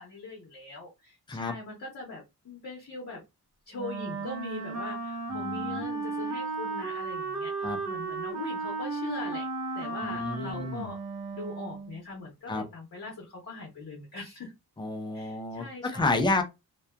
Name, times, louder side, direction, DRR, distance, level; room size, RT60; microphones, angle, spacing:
voice 1, 0.0-3.2 3.7-9.5 9.7-11.0 11.3-14.5 15.1-16.4, left 3 dB, 45° left, 0.8 m, -41 dB
Wind instrument woodwind instrument, 3.8-12.0, right 3 dB, 45° right, 0.5 m, -34 dB
voice 2, 5.3-5.8 7.6-7.8 10.0-10.9 12.5-12.6 14.8-16.4, left 2 dB, 15° left, 0.3 m, -30 dB
2.7 x 2.2 x 2.2 m
wide cardioid pair, 180°, 38 cm